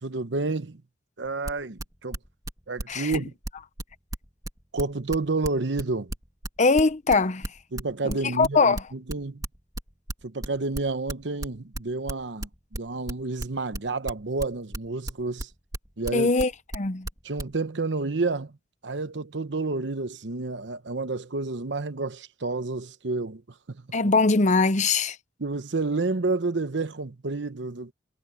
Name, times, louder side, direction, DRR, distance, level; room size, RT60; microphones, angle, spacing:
voice 1, 0.0-0.8 1.2-2.2 2.7-3.3 4.7-6.1 7.7-9.5 10.2-15.5 16.0-16.3 17.2-18.6 18.8-23.4 23.7-23.9 25.4-27.9, right 3 dB, 75° right, 1.0 m, -30 dB
sound 1, 1.4-17.5, right 1 dB, 20° right, 2.2 m, -33 dB
voice 2, 6.6-7.5 8.0-8.8 16.1-17.1 23.9-25.2, left 3 dB, 45° left, 0.8 m, -22 dB
head